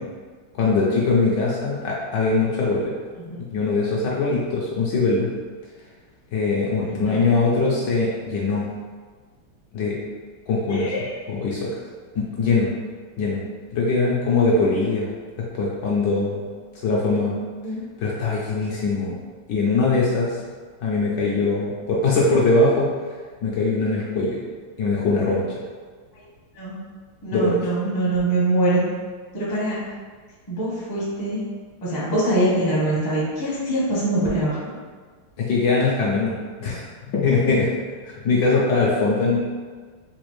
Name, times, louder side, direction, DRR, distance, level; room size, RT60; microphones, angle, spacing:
voice 1, 0.5-2.9 3.4-5.3 6.3-8.6 9.7-10.0 10.5-10.9 11.3-11.7 12.1-12.7 13.2-13.4 13.7-15.1 15.5-16.4 16.8-17.4 18.0-19.1 19.5-20.4 20.8-22.9 23.4-24.4 24.8-25.4 27.3-27.5 35.4-36.8 37.1-37.7 38.0-39.4, left 3 dB, 70° left, -5 dB, 1.1 m, -21 dB
voice 2, 6.8-7.2 10.7-11.1 17.6-17.8 26.6-26.8 27.2-28.8 29.3-29.8 30.5-31.4 31.8-34.7, right 1 dB, 20° left, -8 dB, 0.5 m, -23 dB
4.1 x 2.5 x 3.1 m, 1.5 s
omnidirectional pair, 2.2 m